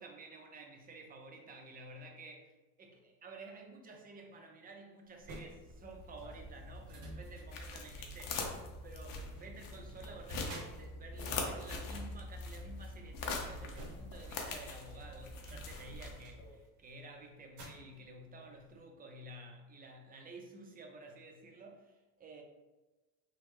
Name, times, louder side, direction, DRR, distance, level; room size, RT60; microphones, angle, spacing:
voice 1, 0.0-2.5 2.8-22.4, right 2 dB, 25° right, 2 dB, 0.5 m, -52 dB
sound 1, 5.1-14.5 14.8-18.8, right 1 dB, 55° right, 0.8 m, -55 dB
sound 2, 5.5-16.5, left 3 dB, 65° left, 0.7 m, -43 dB
3.1 x 2.0 x 3.1 m, 1.1 s
cardioid pair, 105°, 37 cm